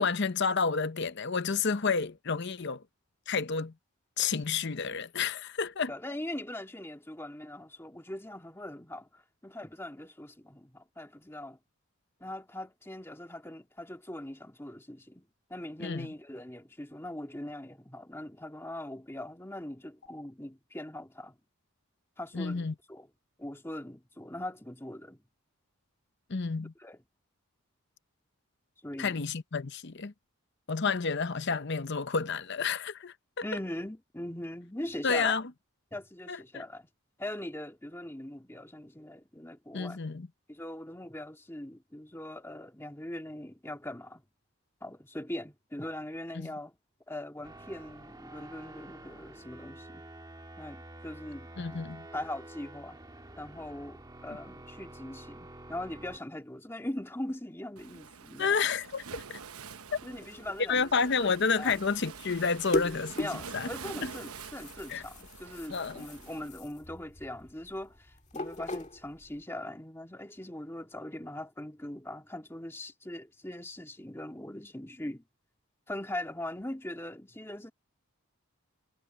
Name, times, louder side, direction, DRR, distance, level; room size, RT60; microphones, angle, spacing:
voice 1, 0.0-2.8 3.3-3.7 4.2-5.9 15.8-16.1 22.3-22.7 26.3-26.7 29.0-30.1 30.7-33.4 35.0-35.4 36.3-36.6 39.7-40.3 46.4-46.5 51.6-52.0 58.4-59.4 59.9-60.0 60.7-63.3 63.5-63.7 64.0-64.1 64.9-65.0 65.7-66.1, left 5 dB, 50° left, 0.8 m, -30 dB
voice 2, 5.9-11.6 12.2-21.4 22.2-23.1 23.4-25.2 26.8-27.0 28.8-29.2 33.4-35.4 35.9-36.9 37.2-40.0 40.5-44.2 44.8-46.7 47.1-50.1 50.6-51.9 52.1-53.0 53.4-58.7 60.0-60.9 61.2-61.8 63.2-75.2 75.9-77.7, left 1 dB, 10° left, 2.0 m, -41 dB
sound 1, 47.4-56.2, right 1 dB, 20° right, 1.6 m, -48 dB
Waves surf, 57.8-66.5, right 6 dB, 85° right, 1.0 m, -47 dB
sound 2, 59.8-69.4, left 2 dB, 30° left, 1.9 m, -41 dB
head